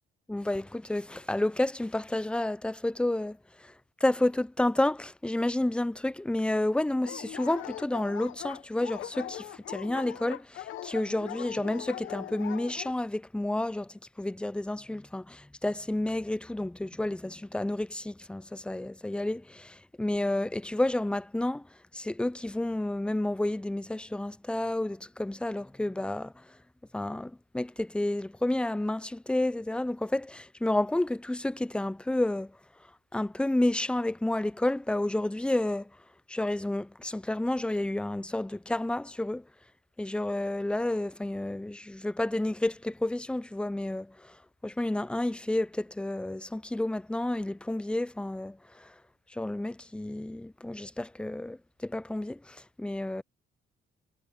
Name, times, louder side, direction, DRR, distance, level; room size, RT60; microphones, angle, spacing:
voice 1, 0.3-3.7 4.0-21.7 21.9-26.6 26.9-32.6 33.1-35.9 36.3-39.4 40.0-48.9 49.3-53.2, left 1 dB, 5° left, 0.6 m, -30 dB
Dog, 7.0-12.9, left 13 dB, 85° left, 1.5 m, -41 dB
cardioid pair, 90°, 20 cm